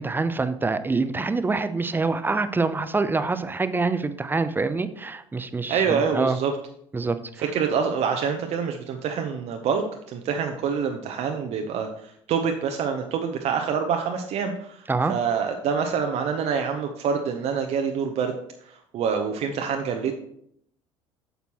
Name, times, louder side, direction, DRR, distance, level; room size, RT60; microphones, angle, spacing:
voice 1, 0.0-6.4 6.9-7.2 14.9-15.1, right 3 dB, 15° right, 12 dB, 0.6 m, -25 dB
voice 2, 5.7-6.5 7.4-18.3 18.6-20.2, right 6 dB, 45° right, 4 dB, 0.7 m, -26 dB
8.7 x 6.7 x 3.0 m, 0.71 s
figure-of-eight pair, 60°, 15 cm